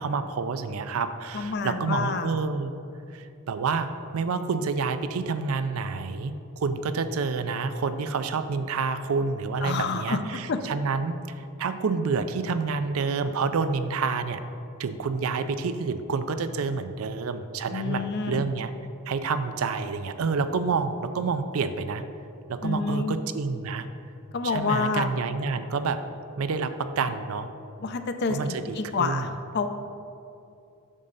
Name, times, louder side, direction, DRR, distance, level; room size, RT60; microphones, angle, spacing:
voice 1, 0.0-2.7 3.1-14.4 14.8-18.7 19.1-22.0 22.5-23.9 24.4-26.0 26.4-27.5 28.3-29.3, right 4 dB, 75° right, 11 dB, 0.4 m, -28 dB
voice 2, 1.3-2.3 9.6-10.2 10.5-10.6 17.7-18.4 22.6-23.2 24.3-25.1 27.8-29.3 29.5-29.7, left 4 dB, 50° left, 8 dB, 0.5 m, -28 dB
7.4 x 6.5 x 4.0 m, 2.6 s
head